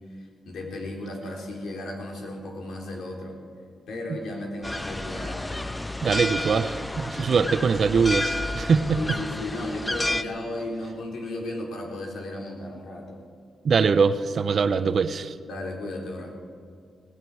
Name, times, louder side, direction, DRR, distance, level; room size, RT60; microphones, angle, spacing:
voice 1, 0.5-3.4 3.9-5.4 9.0-13.2 15.4-16.3, left 1 dB, 75° left, 0 dB, 3.2 m, -34 dB
sound 1, 4.6-10.2, left 1 dB, 10° left, 0.5 m, -30 dB
voice 2, 6.0-9.0 13.6-15.3, right 5 dB, 50° right, 13 dB, 0.6 m, -22 dB
18.0 x 16.5 x 4.7 m, 2.2 s
wide cardioid pair, 145°, 0 cm